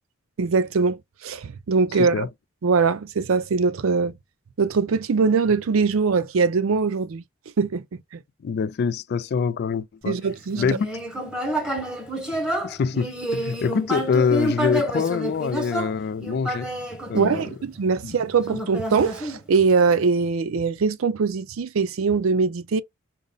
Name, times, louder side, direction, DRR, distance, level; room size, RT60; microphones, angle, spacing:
voice 1, 0.4-2.3 2.6-4.1 4.6-7.2 7.6-7.8 8.1-8.2 10.1-10.6 17.1-22.8, right 5 dB, 90° right, 0.5 m, -22 dB
voice 2, 2.0-2.3 8.4-10.2 10.6-10.8 12.6-16.7 17.1-17.5 18.0-18.2, left 6 dB, 55° left, 0.3 m, -25 dB
Human voice, 10.5-17.9 18.5-19.9, right 1 dB, 5° right, 1.1 m, -29 dB
5.2 x 2.0 x 3.8 m
head